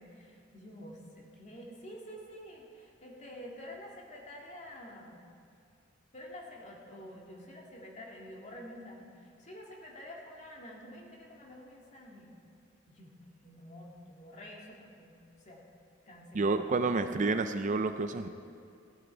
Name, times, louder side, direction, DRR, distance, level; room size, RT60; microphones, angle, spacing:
voice 1, 0.0-5.2 6.1-12.3 12.9-13.2 13.4-15.1 15.4-15.6 16.1-16.6, equal, 35° left, -2 dB, 2.0 m, -48 dB
voice 2, 16.3-18.3, right 3 dB, 40° right, 9 dB, 0.5 m, -29 dB
17.0 x 11.0 x 4.5 m, 2.4 s
head